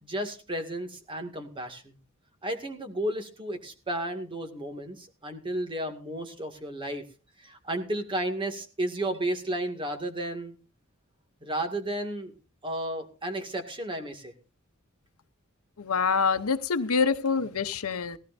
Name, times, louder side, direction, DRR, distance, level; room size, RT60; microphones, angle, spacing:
voice 1, 0.0-2.0 2.4-7.0 7.4-10.6 11.4-12.3 12.6-14.3, right 1 dB, 25° right, 5 dB, 2.1 m, -33 dB
voice 2, 15.8-18.2, left 5 dB, 80° left, 9 dB, 0.8 m, -26 dB
18.0 x 17.0 x 2.6 m, 0.34 s
head